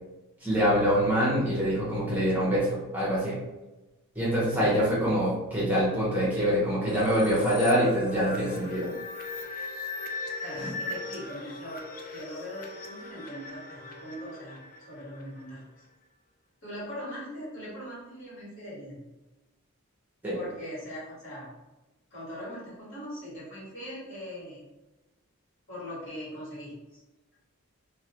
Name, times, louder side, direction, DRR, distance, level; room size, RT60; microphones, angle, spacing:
voice 1, 0.4-3.4 4.1-8.9 10.6-10.7 20.2-20.4, equal, 10° right, -8 dB, 0.6 m, -25 dB
sound 1, 6.9-15.5, left 3 dB, 40° left, 0.3 m, -39 dB
voice 2, 10.4-15.8 16.6-19.0 20.3-21.5 22.1-24.7 25.7-27.0, equal, 60° left, -7 dB, 1.2 m, -41 dB
2.2 x 2.1 x 2.8 m, 1.1 s
head